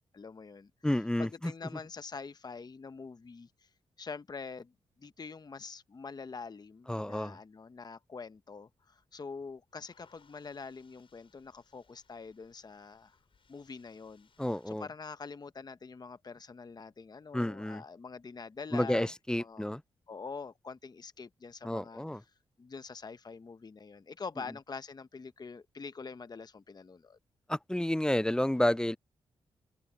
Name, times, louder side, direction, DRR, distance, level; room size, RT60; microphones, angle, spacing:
voice 1, 0.1-0.7 1.2-3.7 4.0-4.7 5.0-13.2 13.5-14.3 14.7-19.7 20.1-22.0 22.6-27.2, left 4 dB, 40° left, 0.9 m, -45 dB
voice 2, 0.8-1.5 6.9-7.4 14.4-14.9 17.3-17.8 18.7-19.8 21.6-22.2 27.5-29.0, left 1 dB, 5° left, 0.5 m, -30 dB
sound 1, 8.7-14.8, left 5 dB, 55° left, 5.7 m, -69 dB
cardioid pair, 55°, 11 cm